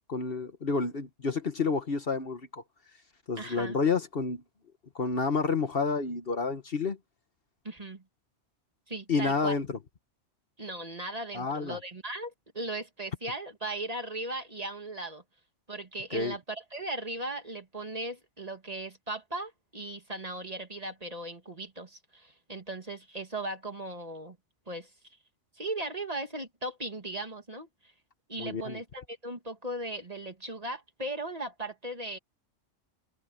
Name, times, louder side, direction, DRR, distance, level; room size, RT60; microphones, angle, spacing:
voice 1, 0.1-2.6 3.3-4.4 4.9-7.0 9.1-9.6 11.3-11.8 16.1-16.3 28.4-28.8, left 4 dB, 50° left, 1.4 m, -29 dB
voice 2, 3.4-3.8 7.6-8.0 8.9-9.6 10.6-15.2 15.7-24.4 24.7-24.9 25.5-27.9 28.3-32.2, right 2 dB, 30° right, 2.0 m, -37 dB
omnidirectional pair, 1.3 m